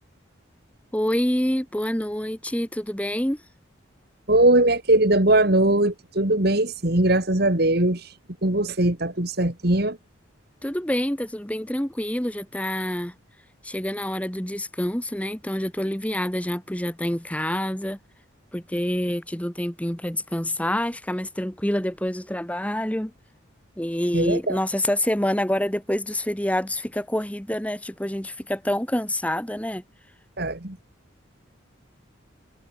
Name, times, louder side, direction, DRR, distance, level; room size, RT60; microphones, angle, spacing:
voice 1, 0.9-3.4 10.6-13.1 13.6-18.0 18.5-23.1 23.8-29.8, left 1 dB, 5° left, 1.4 m, -27 dB
voice 2, 4.3-8.1 8.4-10.0 24.1-24.6 30.4-30.8, right 1 dB, 50° right, 2.5 m, -20 dB
head